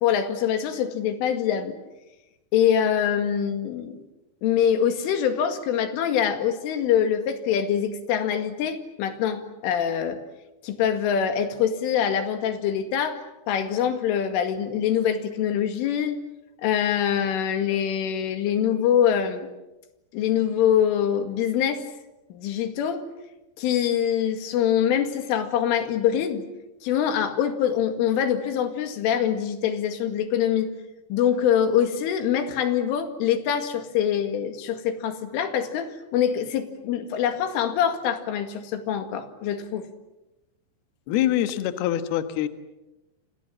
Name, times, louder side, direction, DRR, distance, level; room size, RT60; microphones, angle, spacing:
voice 1, 0.0-1.8 2.5-4.0 4.4-10.2 10.6-13.2 13.5-16.2 16.6-19.5 20.1-21.8 22.3-23.0 23.6-26.5 26.8-30.7 31.1-39.9, left 9 dB, 85° left, 7 dB, 4.6 m, -24 dB
voice 2, 41.1-42.5, left 12 dB, 65° left, 9 dB, 2.9 m, -24 dB
30.0 x 26.5 x 7.5 m, 1.0 s
omnidirectional pair, 5.5 m